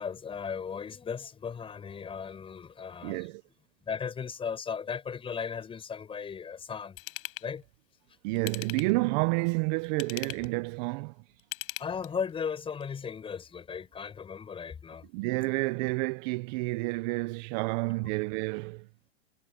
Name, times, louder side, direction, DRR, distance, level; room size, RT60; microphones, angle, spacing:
voice 1, 0.0-3.3 3.9-7.0 7.4-7.6 11.8-15.1, left 6 dB, 15° left, 7.3 m, -36 dB
voice 2, 3.0-3.4 8.2-11.1 15.1-18.9, right 24 dB, 40° right, 1.3 m, -30 dB
Ratchet pawl / Tools, 7.0-7.5 8.3-9.0 9.8-10.5 11.4-12.3 12.8-12.9, left 18 dB, 55° left, 5.8 m, -39 dB
hypercardioid pair, 130°, 34 cm